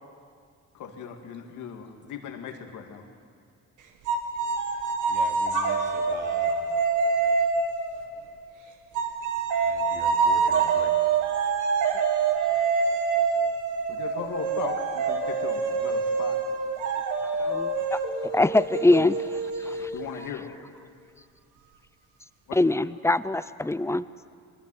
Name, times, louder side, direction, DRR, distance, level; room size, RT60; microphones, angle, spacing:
voice 1, 0.7-3.0 13.9-16.4 17.8-17.9 19.8-20.5 22.5-22.6, left 7 dB, 85° left, 2.3 m, -38 dB
sound 1, 4.1-8.4 8.9-20.3, right 5 dB, 80° right, 2.2 m, -26 dB
voice 2, 5.1-6.5 9.6-11.0, right 3 dB, 35° right, 3.0 m, -42 dB
voice 3, 17.2-19.9 22.5-24.1, left 2 dB, 10° left, 0.6 m, -24 dB
23.5 x 19.0 x 7.8 m
cardioid pair, 90°, 30 cm